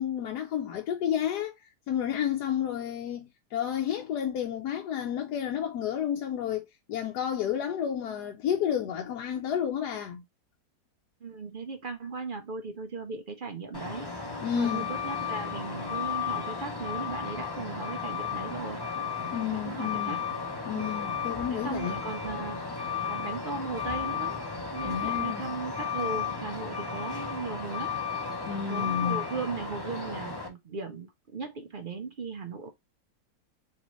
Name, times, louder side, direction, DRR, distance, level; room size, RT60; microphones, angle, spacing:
voice 1, 0.0-10.2 14.4-14.9 19.3-20.2 20.7-22.0 24.8-25.5 28.5-29.2, left 9 dB, 80° left, 1.2 m, -31 dB
voice 2, 11.2-18.8 19.6-20.2 20.7-20.9 21.5-22.7 23.1-24.4 24.7-27.9 28.7-32.7, right 4 dB, 60° right, 0.5 m, -37 dB
Truck, 13.7-30.5, left 6 dB, 25° left, 0.6 m, -34 dB
4.0 x 3.3 x 3.0 m
omnidirectional pair, 1.7 m